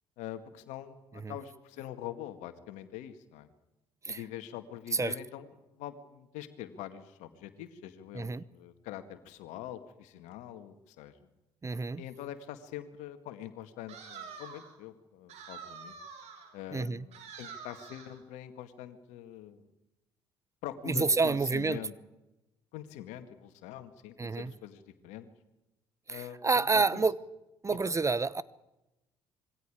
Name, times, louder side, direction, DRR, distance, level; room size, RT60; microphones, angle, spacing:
voice 1, 0.2-3.5 4.1-11.2 12.0-15.9 16.5-19.6 20.6-21.9 22.7-25.3 26.1-27.0 27.7-28.0, left 11 dB, 70° left, 2.1 m, -44 dB
voice 2, 11.6-12.0 16.7-17.1 20.8-21.8 24.2-24.5 26.1-27.2 27.6-28.4, right 4 dB, 25° right, 0.9 m, -29 dB
sound 1, 13.9-14.8 15.3-16.5 17.1-18.2, right 6 dB, 60° right, 5.0 m, -47 dB
26.5 x 22.0 x 5.0 m
hypercardioid pair, 55°, 13 cm